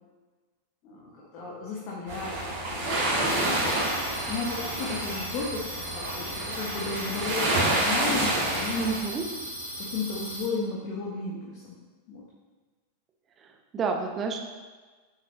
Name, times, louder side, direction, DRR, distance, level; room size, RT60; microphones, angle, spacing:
voice 1, 0.8-8.8 9.8-11.7 12.1-12.2, left 4 dB, 40° left, -4 dB, 1.3 m, -34 dB
sound 1, 2.1-9.0, right 1 dB, 50° right, 2.4 m, -28 dB
sound 2, 3.2-10.4, right 1 dB, 85° left, 2.2 m, -38 dB
voice 2, 8.8-9.2 13.7-14.4, right 4 dB, 25° right, 3 dB, 0.9 m, -29 dB
9.0 x 6.4 x 3.0 m, 1.4 s
figure-of-eight pair, 90°, 0 cm